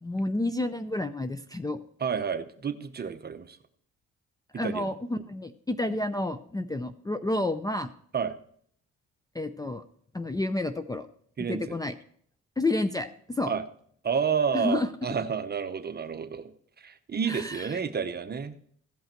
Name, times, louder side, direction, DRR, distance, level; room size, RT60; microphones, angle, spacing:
voice 1, 0.0-1.8 4.6-7.9 9.3-9.8 10.1-11.1 11.5-11.9 12.6-13.6 14.5-14.9 17.3-17.8, left 2 dB, 10° left, 10 dB, 0.5 m, -30 dB
voice 2, 2.0-3.6 4.5-4.9 8.1-8.3 11.4-11.8 13.5-13.6 14.0-16.4 16.8-18.5, right 6 dB, 35° right, 10 dB, 0.8 m, -30 dB
16.0 x 5.5 x 4.4 m, 0.63 s
cardioid pair, 90°, 30 cm